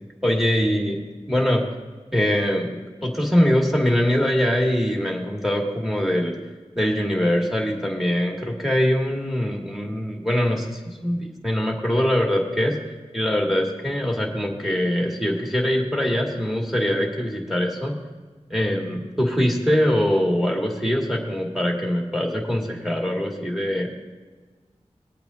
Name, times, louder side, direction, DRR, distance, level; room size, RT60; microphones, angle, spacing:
voice 1, 0.2-1.0 1.3-1.7 2.1-6.3 6.8-12.8 13.1-17.9 18.5-23.9, equal, ahead, -1 dB, 2.2 m, -23 dB
21.0 x 8.8 x 2.7 m, 1.3 s
wide cardioid pair, 65°, 12 cm